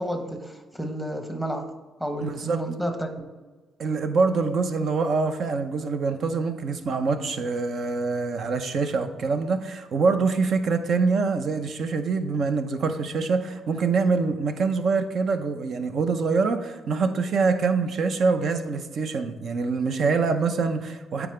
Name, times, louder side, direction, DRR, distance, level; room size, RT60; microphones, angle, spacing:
voice 1, 0.0-1.7 2.0-3.3, right 1 dB, 5° right, 5 dB, 1.0 m, -31 dB
voice 2, 2.2-2.6 3.8-21.3, right 4 dB, 60° right, 8 dB, 0.7 m, -25 dB
8.9 x 4.8 x 3.3 m, 1.3 s
cardioid pair, 90°, 0 cm